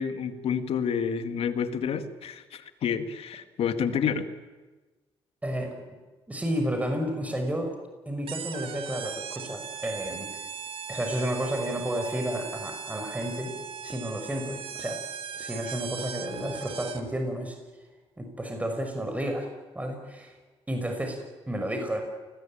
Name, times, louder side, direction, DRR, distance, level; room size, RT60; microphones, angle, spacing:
voice 1, 0.0-4.3, left 7 dB, 70° left, 9 dB, 2.2 m, -29 dB
voice 2, 5.4-5.7 6.3-7.7 8.1-10.3 10.9-13.6 13.8-15.0 15.3-17.6 18.2-19.5 19.7-20.3 20.7-21.2 21.5-22.0, equal, 15° right, 4 dB, 6.0 m, -31 dB
sound 1, 8.3-17.2, right 7 dB, 65° right, 2.1 m, -39 dB
29.0 x 20.0 x 8.9 m, 1.3 s
cardioid pair, 75°, 10 cm